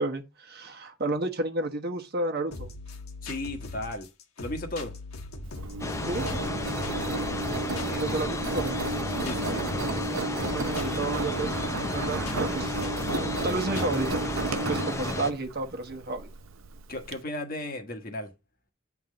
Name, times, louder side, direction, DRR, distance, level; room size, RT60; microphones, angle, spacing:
voice 1, 0.0-2.7 5.9-6.2 8.0-8.7 10.5-12.7 13.2-14.3 14.7-16.3, right 2 dB, 45° right, 1.2 m, -31 dB
sound 1, 2.5-14.5, left 3 dB, 90° left, 1.4 m, -40 dB
voice 2, 3.2-4.1 4.4-4.9 7.8-8.5 9.2-9.6 16.9-18.3, left 1 dB, 40° left, 1.4 m, -35 dB
Engine, 5.4-17.1, right 3 dB, 65° right, 0.6 m, -33 dB
sound 2, 5.8-15.3, left 2 dB, 15° left, 0.5 m, -33 dB
8.7 x 3.7 x 6.3 m
head